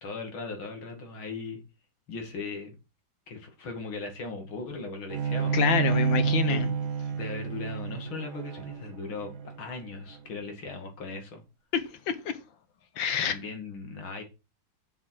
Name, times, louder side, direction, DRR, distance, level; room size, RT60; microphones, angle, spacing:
voice 1, 0.0-1.6 2.1-2.7 3.3-5.6 6.4-6.7 7.1-9.3 9.6-11.4 13.2-14.2, left 4 dB, 90° left, 3.1 m, -38 dB
Bowed string instrument, 5.1-10.4, right 7 dB, 55° right, 2.0 m, -29 dB
voice 2, 5.5-6.7 11.7-12.4 13.0-13.4, left 7 dB, 70° left, 1.8 m, -27 dB
7.4 x 7.3 x 6.0 m
omnidirectional pair, 2.2 m